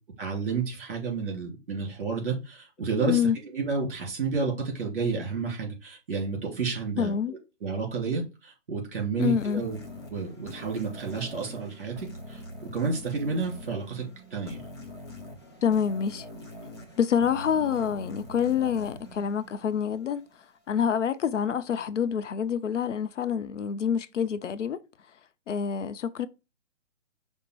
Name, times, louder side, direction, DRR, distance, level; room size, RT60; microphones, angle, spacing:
voice 1, 0.2-7.1 7.6-9.8 10.1-14.6, right 4 dB, 45° right, 3.0 m, -31 dB
voice 2, 7.0-7.3 9.2-9.6 15.6-16.3 17.0-20.3 20.7-24.8 25.5-26.3, left 7 dB, 70° left, 0.6 m, -27 dB
sound 1, 9.2-20.4, equal, 20° left, 0.6 m, -44 dB
5.4 x 2.1 x 4.5 m
hypercardioid pair, 170°, 38 cm